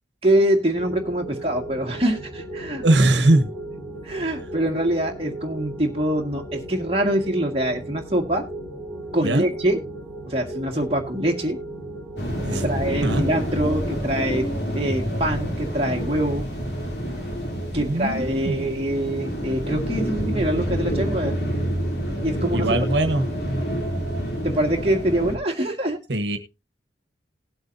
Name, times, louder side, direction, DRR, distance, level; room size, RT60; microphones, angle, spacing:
voice 1, 0.2-2.9 3.1-3.2 4.0-8.4 9.1-9.8 10.3-11.6 12.6-14.5 14.8-16.5 17.7-21.3 22.2-22.7 24.4-26.0, right 1 dB, 30° right, 2 dB, 1.8 m, -24 dB
sound 1, 0.7-13.6, right 1 dB, 5° left, 2.8 m, -36 dB
voice 2, 2.8-3.5 9.2-9.4 12.3-12.6 13.0-13.2 17.7-18.7 22.5-23.3 26.1-26.4, right 2 dB, 80° right, 8 dB, 1.2 m, -21 dB
sound 2, 12.2-25.4, equal, 70° left, 3.1 m, -27 dB
19.0 x 7.9 x 2.7 m, 0.27 s
head